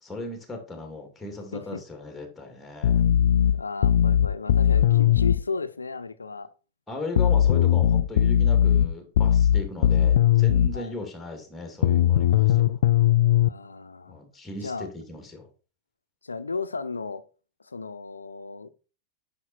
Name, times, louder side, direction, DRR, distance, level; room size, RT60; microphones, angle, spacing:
voice 1, 0.0-3.0 4.6-5.3 6.9-12.8 14.1-15.5, left 2 dB, 5° left, 2.7 m, -37 dB
voice 2, 1.5-1.8 3.5-6.5 10.7-10.9 13.4-14.2 14.6-14.9 16.2-17.2 17.6-18.7, left 4 dB, 75° left, 0.7 m, -34 dB
sound 1, 2.8-5.4 7.2-10.8 11.8-13.5, left 11 dB, 60° left, 0.3 m, -19 dB
9.8 x 5.7 x 4.4 m
figure-of-eight pair, 90°, 0 cm